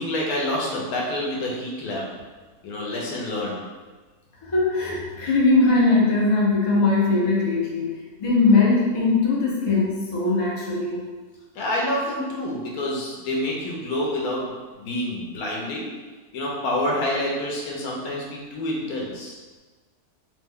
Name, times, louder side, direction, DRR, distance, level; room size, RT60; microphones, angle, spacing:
voice 1, 0.0-2.1 2.6-3.6 11.5-15.9 16.3-19.4, left 1 dB, 75° left, -3 dB, 1.2 m, -27 dB
voice 2, 4.4-11.0, left 3 dB, 45° left, -5 dB, 0.4 m, -20 dB
3.1 x 2.1 x 3.5 m, 1.3 s
omnidirectional pair, 1.6 m